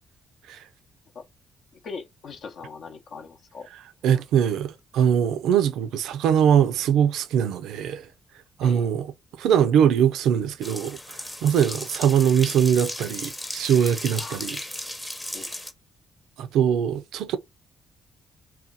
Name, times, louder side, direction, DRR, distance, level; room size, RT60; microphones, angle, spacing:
voice 1, 1.8-3.7 4.1-4.2 8.6-8.9 14.2-14.4 15.3-15.5, left 5 dB, 65° left, 0.6 m, -40 dB
voice 2, 4.0-8.1 8.6-9.1 9.4-11.0 11.4-14.6 16.4-17.4, right 8 dB, 85° right, 0.4 m, -22 dB
sound 1, 10.6-15.7, left 1 dB, 10° left, 0.6 m, -35 dB
2.7 x 2.3 x 3.8 m
cardioid pair, 90°, 0 cm